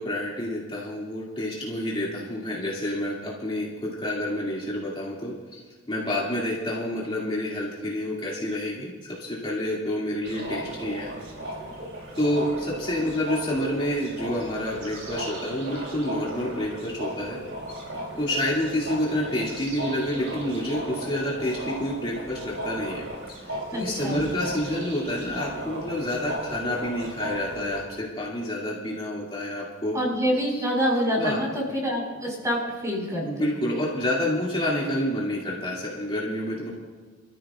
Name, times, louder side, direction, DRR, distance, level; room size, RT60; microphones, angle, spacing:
voice 1, 0.0-5.6 5.9-11.1 12.1-17.4 18.2-23.0 23.4-30.0 30.5-30.6 31.2-31.4 33.2-36.7, left 1 dB, 25° left, -6 dB, 2.5 m, -28 dB
sound 1, 10.2-27.8, right 1 dB, 75° right, 3.4 m, -36 dB
voice 2, 23.7-24.2 29.9-33.5, equal, 15° right, -3 dB, 4.6 m, -26 dB
27.0 x 14.0 x 2.5 m, 1.4 s
head